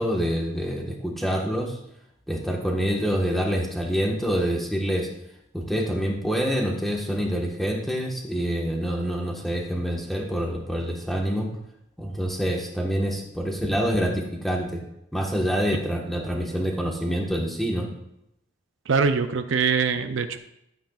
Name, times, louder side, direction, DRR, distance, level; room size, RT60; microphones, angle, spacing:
voice 1, 0.0-1.8 2.3-5.1 5.5-11.5 12.0-14.8 15.1-17.9, equal, ahead, -1 dB, 1.3 m, -26 dB
voice 2, 18.9-20.4, right 5 dB, 75° right, 9 dB, 0.5 m, -23 dB
11.5 x 9.1 x 2.4 m, 0.81 s
head